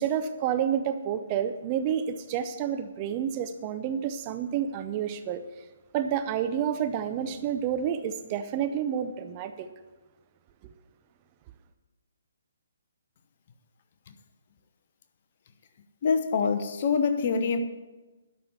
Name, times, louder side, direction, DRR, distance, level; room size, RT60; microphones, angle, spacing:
voice 1, 0.0-5.4 5.9-9.7, right 9 dB, 30° right, 8 dB, 0.7 m, -29 dB
voice 2, 16.0-17.6, left 5 dB, 40° left, 8 dB, 0.9 m, -25 dB
12.0 x 5.3 x 8.4 m, 1.2 s
figure-of-eight pair, 135°, 0 cm